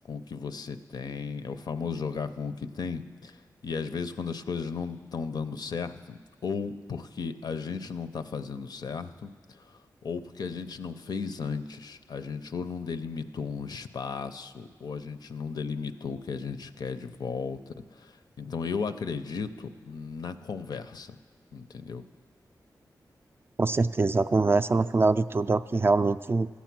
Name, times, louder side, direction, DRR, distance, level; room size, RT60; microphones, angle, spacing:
voice 1, 0.1-3.3 3.6-9.3 10.0-18.1 18.4-21.2 21.5-22.0, left 5 dB, 70° left, 10 dB, 0.5 m, -35 dB
voice 2, 23.6-26.5, right 3 dB, 35° right, 11 dB, 0.3 m, -24 dB
14.0 x 8.3 x 6.0 m, 1.5 s
cardioid pair, 70°, 7 cm